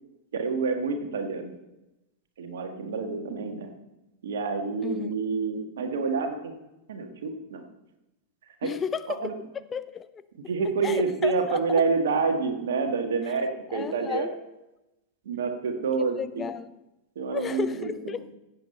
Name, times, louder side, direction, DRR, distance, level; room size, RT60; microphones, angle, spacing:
voice 1, 0.3-1.6 2.4-3.7 4.2-6.5 6.9-7.6 8.6-8.7 9.1-9.3 10.5-14.3 15.2-16.4 17.1-18.2, right 4 dB, 60° right, 5 dB, 1.5 m, -28 dB
voice 2, 8.6-9.3 9.7-10.1 10.8-11.8 13.7-14.3 16.2-16.7 17.3-17.8 18.1-18.4, left 7 dB, 20° left, 13 dB, 0.4 m, -32 dB
16.0 x 8.3 x 4.2 m, 0.97 s
figure-of-eight pair, 90°, 0 cm